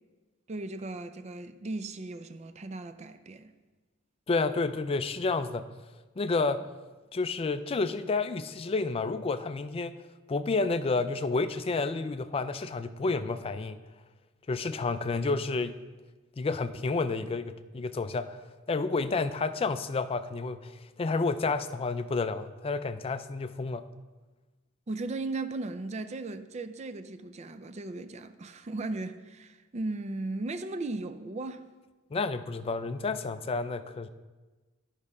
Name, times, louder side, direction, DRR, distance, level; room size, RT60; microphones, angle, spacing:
voice 1, 0.5-3.5 24.9-31.7, right 2 dB, 35° right, 0.4 m, -37 dB
voice 2, 4.3-5.7 6.2-6.7 7.1-10.0 10.3-13.8 14.5-15.8 16.4-18.4 18.7-23.9 32.1-34.1, left 3 dB, 30° left, 0.4 m, -30 dB
10.5 x 4.8 x 5.4 m
head